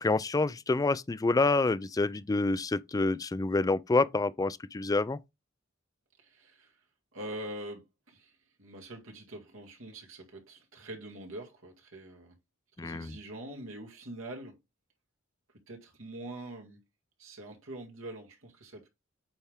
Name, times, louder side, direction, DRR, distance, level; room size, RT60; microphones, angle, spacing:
voice 1, 0.0-5.2 12.8-13.2, left 3 dB, 15° left, 0.3 m, -27 dB
voice 2, 6.2-6.7 7.1-8.3 8.6-12.4 12.8-14.6 15.7-16.8 17.2-18.9, right 1 dB, 80° right, 2.0 m, -44 dB
8.6 x 3.4 x 3.6 m
head